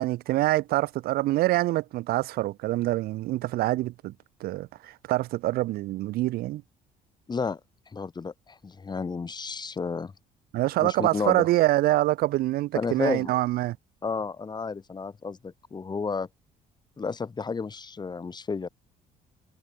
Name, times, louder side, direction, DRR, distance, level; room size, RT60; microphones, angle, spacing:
voice 1, 0.0-4.1 4.4-6.6 10.5-13.8, right 17 dB, 65° right, 0.4 m, -25 dB
voice 2, 7.3-7.6 7.9-10.1 10.8-11.5 12.7-13.3 14.0-16.3 17.0-18.7, left 4 dB, 25° left, 1.8 m, -32 dB
cardioid pair, 110°, 17 cm